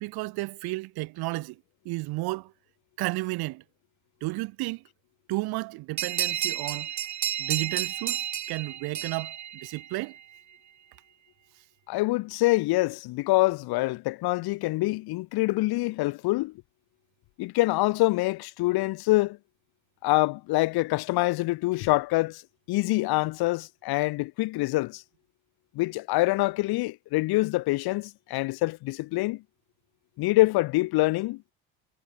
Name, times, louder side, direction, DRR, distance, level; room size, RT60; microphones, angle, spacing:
voice 1, 0.0-1.6 1.8-2.5 3.0-3.6 4.2-4.8 5.3-6.9 7.4-10.2, right 21 dB, 70° right, 1.4 m, -32 dB
sound 1, 6.0-10.2, right 10 dB, 45° right, 2.4 m, -31 dB
voice 2, 11.9-16.5 17.4-19.4 20.0-22.4 22.7-25.0 25.7-29.4 30.2-31.4, left 20 dB, 65° left, 1.7 m, -25 dB
supercardioid pair, 90°, 40 cm